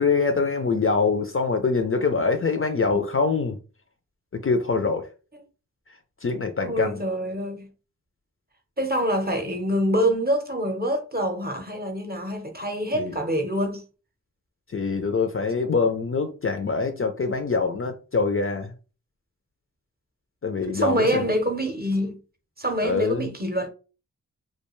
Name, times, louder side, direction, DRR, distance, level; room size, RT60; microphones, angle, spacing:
voice 1, 0.0-3.6 4.3-5.1 6.2-7.0 12.9-13.2 14.7-18.7 20.4-21.3 22.8-23.3, left 4 dB, 35° left, 0.4 m, -24 dB
voice 2, 6.6-7.7 8.8-13.8 20.7-22.2 22.6-23.7, equal, 25° right, 0.7 m, -25 dB
2.3 x 2.2 x 3.0 m
cardioid pair, 40°, 36 cm